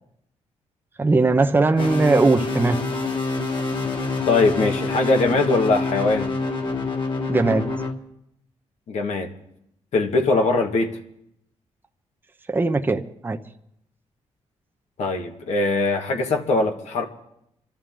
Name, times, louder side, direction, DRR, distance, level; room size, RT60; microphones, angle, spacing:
voice 1, 1.0-2.8 7.3-7.7 12.5-13.4, right 3 dB, 15° right, 4 dB, 0.8 m, -19 dB
sound 1, 1.8-7.9, left 3 dB, 40° left, 2.0 m, -26 dB
voice 2, 4.3-6.3 8.9-9.3 9.9-10.9 15.0-17.0, left 3 dB, 75° left, 4 dB, 1.8 m, -21 dB
26.5 x 13.0 x 3.8 m, 0.76 s
cardioid pair, 100°, 12 cm